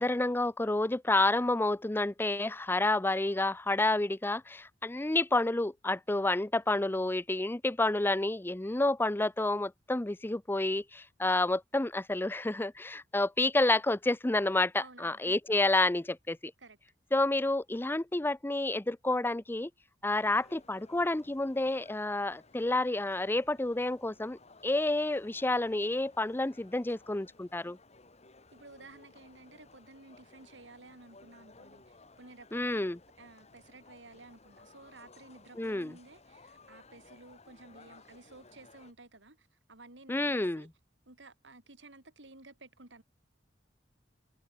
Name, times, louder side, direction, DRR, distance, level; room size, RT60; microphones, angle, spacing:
voice 1, 0.0-16.5 17.1-19.7 20.0-27.8 32.5-33.0 35.6-35.9 40.1-40.7, left 2 dB, 10° left, 0.5 m, -29 dB
voice 2, 14.8-15.4 16.6-16.8 28.5-32.9 33.2-40.7 41.1-43.0, right 2 dB, 85° right, 4.4 m, -54 dB
sound 1, 20.1-38.9, left 3 dB, 35° left, 3.9 m, -58 dB
head